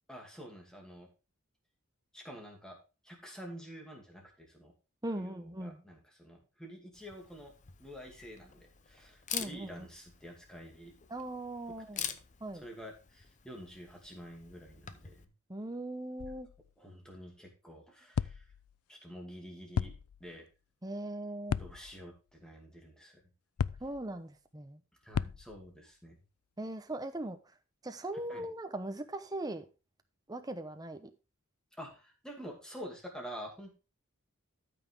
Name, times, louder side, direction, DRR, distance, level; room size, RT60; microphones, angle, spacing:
voice 1, 0.1-1.1 2.1-2.8 3.0-4.7 5.1-7.5 7.8-10.9 11.9-12.2 12.5-15.3 16.8-18.4 18.9-19.9 20.2-20.5 21.6-23.2 25.0-26.2 28.3-28.5 31.8-33.8, equal, 5° left, 2.5 m, -48 dB
voice 2, 5.0-5.8 9.3-9.9 11.1-12.1 12.4-12.6 15.5-16.5 20.8-21.6 23.8-24.8 26.6-27.4 27.8-29.6 30.3-31.1, right 1 dB, 15° right, 0.9 m, -39 dB
Camera, 6.9-15.3, left 9 dB, 35° left, 0.7 m, -46 dB
sound 1, 16.2-16.7 18.1-18.8 19.7-20.4 21.5-22.1 23.6-24.1 25.1-25.7, left 7 dB, 80° left, 0.4 m, -36 dB
13.0 x 6.0 x 3.5 m
head